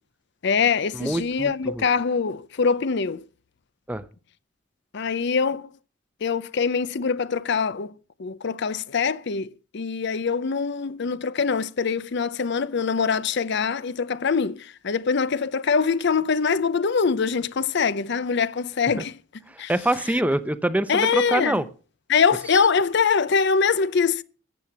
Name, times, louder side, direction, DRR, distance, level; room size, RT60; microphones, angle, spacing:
voice 1, 0.4-3.3 4.9-5.7 6.2-7.9 8.2-19.2 19.6-19.7 20.9-21.6 22.1-24.2, left 5 dB, 60° left, 0.6 m, -23 dB
voice 2, 0.9-1.8 3.9-4.0 19.7-21.6, right 1 dB, 10° right, 0.7 m, -25 dB
14.0 x 8.3 x 5.9 m
head